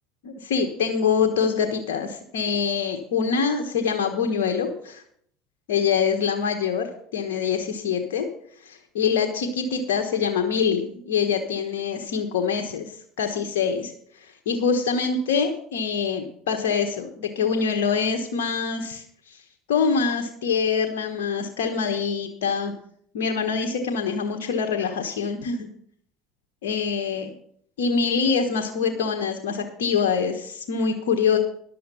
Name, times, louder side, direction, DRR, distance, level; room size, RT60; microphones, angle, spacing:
voice 1, 0.2-5.0 5.7-8.3 8.6-12.8 13.2-13.9 14.5-19.4 19.7-22.7 23.1-25.7 26.6-27.3 27.8-31.4, left 6 dB, 85° left, 3 dB, 1.3 m, -25 dB
11.5 x 7.6 x 6.9 m, 0.63 s
supercardioid pair, 90°, 0 cm